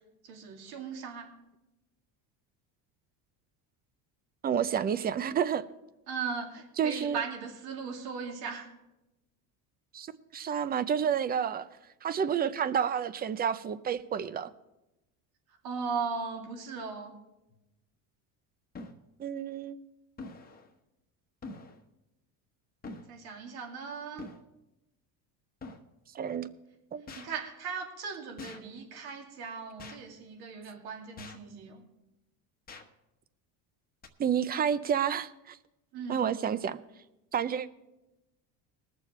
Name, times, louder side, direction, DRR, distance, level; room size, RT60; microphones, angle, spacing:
voice 1, 0.2-1.3 6.1-8.7 15.6-17.1 23.1-24.3 27.1-31.8 35.9-36.3, right 5 dB, 55° right, 3 dB, 2.4 m, -38 dB
voice 2, 4.4-5.6 6.8-7.2 9.9-11.7 12.0-14.5 19.2-19.8 26.1-26.5 26.9-27.0 34.2-35.6 36.1-36.8 37.3-37.7, right 8 dB, 20° right, 16 dB, 0.5 m, -30 dB
sound 1, 17.5-17.6 18.8-19.0 20.2-20.7 21.4-21.8 22.8-23.2 24.2-24.4 25.6-25.9 27.1-27.3 28.4-28.6 29.8-30.0 31.2-31.5 32.7-32.9 34.0-34.1, left 3 dB, 20° left, 1.1 m, -44 dB
20.5 x 7.0 x 4.3 m, 0.95 s
cardioid pair, 120°, 43 cm